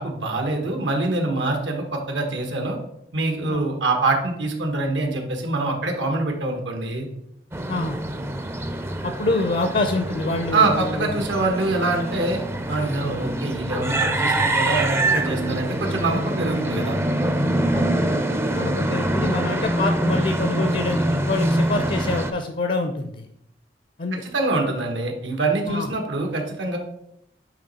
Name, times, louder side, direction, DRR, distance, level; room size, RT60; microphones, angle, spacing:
voice 1, 0.0-2.8 3.1-7.1 10.5-12.4 12.7-17.0 24.2-26.8, right 2 dB, 85° right, 2 dB, 1.3 m, -24 dB
sound 1, 7.5-22.3, right 1 dB, 15° right, 0.4 m, -24 dB
voice 2, 7.7-8.0 9.0-11.2 13.0-13.2 17.7-18.0 18.5-23.3 24.0-24.2 25.7-25.9, left 2 dB, 50° left, 7 dB, 0.5 m, -26 dB
9.1 x 3.1 x 4.1 m, 0.76 s
head